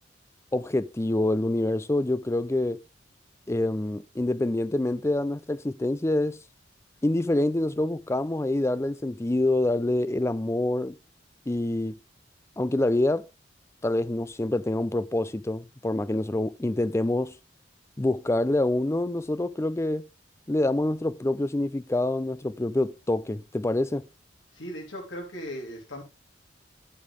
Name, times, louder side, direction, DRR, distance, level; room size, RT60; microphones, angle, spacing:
voice 1, 0.5-2.8 3.5-6.4 7.0-11.0 11.5-12.0 12.6-13.3 13.8-17.3 18.0-20.0 20.5-24.0, left 1 dB, 15° left, 0.4 m, -26 dB
voice 2, 24.5-26.0, equal, 75° left, 3.0 m, -37 dB
9.4 x 8.5 x 3.2 m
head